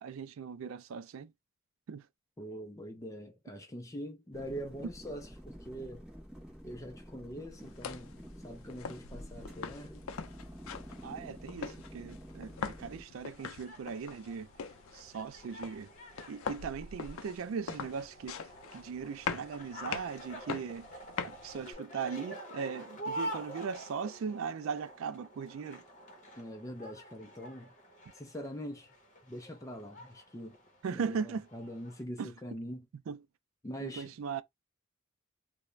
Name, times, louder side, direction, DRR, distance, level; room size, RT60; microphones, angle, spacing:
voice 1, 0.0-1.3 1.9-2.0 11.0-14.5 14.9-15.9 16.3-18.4 18.7-20.9 21.2-25.8 30.8-31.5 32.2-32.3 33.1-33.2 33.8-34.4, right 6 dB, 80° right, 0.3 m, -39 dB
voice 2, 2.4-6.0 6.6-10.0 26.4-27.7 28.1-28.9 29.2-30.6 30.9-32.9 33.6-34.1, equal, 15° left, 0.4 m, -43 dB
sound 1, 4.3-13.0, equal, 5° right, 0.8 m, -49 dB
sound 2, 7.5-21.7, left 6 dB, 85° left, 0.4 m, -43 dB
sound 3, 12.8-32.0, equal, 40° left, 0.8 m, -47 dB
2.3 x 2.1 x 3.1 m
head